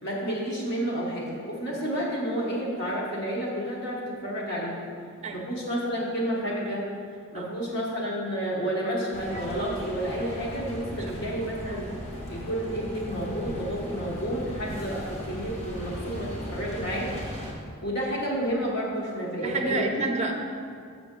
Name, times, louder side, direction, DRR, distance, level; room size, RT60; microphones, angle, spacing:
voice 1, 0.0-4.7 5.3-6.9 7.3-11.8 12.3-17.1 17.8-19.9, equal, 50° left, -5 dB, 1.2 m, -30 dB
sound 1, 9.1-17.5, equal, 30° left, 1.0 m, -37 dB
voice 2, 19.4-20.3, right 2 dB, 30° right, 4 dB, 0.6 m, -29 dB
6.8 x 6.5 x 3.8 m, 2.2 s
head